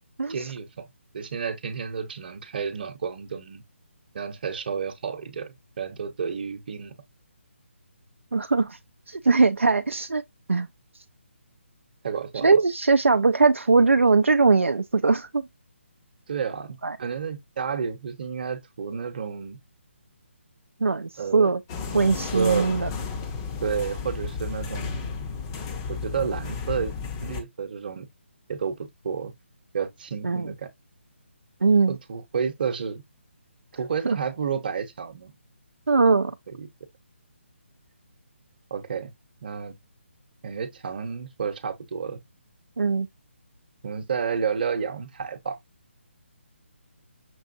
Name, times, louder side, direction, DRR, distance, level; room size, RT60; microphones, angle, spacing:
voice 1, 0.3-0.9 1.1-3.6 4.1-6.9 12.0-12.6 16.3-19.6 21.2-21.5 21.9-22.7 23.6-25.1 25.9-26.9 27.2-28.1 28.5-28.8 29.0-29.3 29.7-30.7 31.9-33.0 33.8-35.3 36.5-36.7 38.7-39.1 39.4-39.8 40.4-42.2 43.8-45.6, right 6 dB, 45° right, 0.8 m, -31 dB
voice 2, 8.3-8.8 9.1-10.2 10.5-10.7 12.4-15.4 16.8-17.0 20.8-21.6 21.9-22.9 30.2-30.5 31.6-31.9 35.9-36.3 42.8-43.1, right 4 dB, 80° right, 0.4 m, -20 dB
sound 1, 21.7-27.4, left 5 dB, 20° left, 0.6 m, -33 dB
6.1 x 2.5 x 2.6 m
figure-of-eight pair, 145°, 7 cm